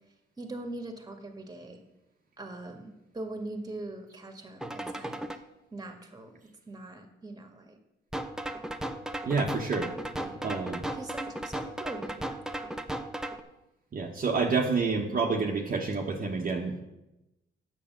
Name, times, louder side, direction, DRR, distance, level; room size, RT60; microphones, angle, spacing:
voice 1, 0.4-1.8 2.4-5.2 5.7-6.3 6.7-7.8 9.8-9.9 10.2-12.7, right 2 dB, 20° right, 5 dB, 1.8 m, -42 dB
sound 1, 4.6-5.4 8.1-13.4, right 1 dB, 5° right, 0.8 m, -36 dB
voice 2, 9.3-9.9 10.4-10.8 13.9-16.8, right 4 dB, 45° right, 0 dB, 1.3 m, -28 dB
8.9 x 6.7 x 7.4 m, 0.96 s
cardioid pair, 90°, 20 cm